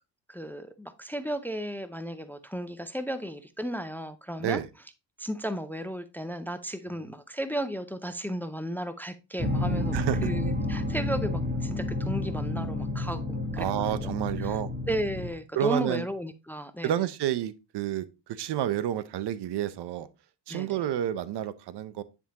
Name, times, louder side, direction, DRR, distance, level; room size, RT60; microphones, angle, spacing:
voice 1, 0.3-4.6 5.2-14.6 14.9-16.9 20.5-20.8, equal, 5° left, 0.5 m, -34 dB
sound 1, 9.4-15.3, left 1 dB, 20° right, 1.6 m, -30 dB
voice 2, 9.9-10.3 13.6-14.7 15.5-16.0 16.8-20.1 20.5-22.0, right 11 dB, 60° right, 0.7 m, -30 dB
10.0 x 3.6 x 2.9 m
supercardioid pair, 75°, 45 cm